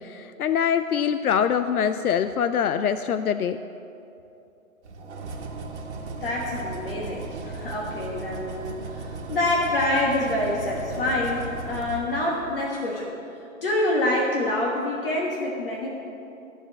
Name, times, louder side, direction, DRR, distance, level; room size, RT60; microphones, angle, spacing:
voice 1, 0.0-3.6, left 8 dB, 85° left, 11 dB, 0.6 m, -24 dB
sound 1, 4.8-12.8, right 3 dB, 50° right, 1.6 m, -36 dB
voice 2, 6.2-13.1 13.6-15.9, left 1 dB, 40° left, -2 dB, 1.4 m, -26 dB
14.5 x 4.9 x 7.7 m, 2.8 s
hypercardioid pair, 150°, 43 cm